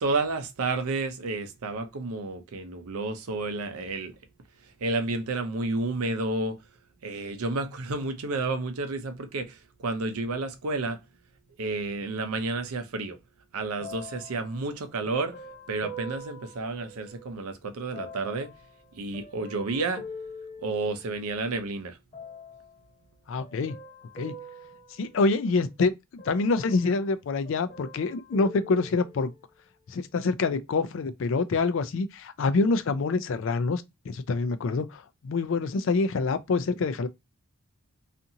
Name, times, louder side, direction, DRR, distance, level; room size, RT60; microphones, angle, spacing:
voice 1, 0.0-4.1 4.8-6.6 7.0-11.0 11.6-13.2 13.5-15.4 15.7-18.5 19.0-20.0 20.6-22.0, right 3 dB, 80° right, 0.5 m, -31 dB
sound 1, 13.8-17.4 17.9-21.4 22.1-22.8 23.4-25.7 26.2-27.2 27.4-29.5 30.2-30.3, left 1 dB, 25° left, 1.0 m, -45 dB
voice 2, 23.3-23.8 24.1-24.3 24.9-29.3 29.9-37.1, left 3 dB, 60° left, 0.3 m, -26 dB
2.7 x 2.5 x 2.6 m
head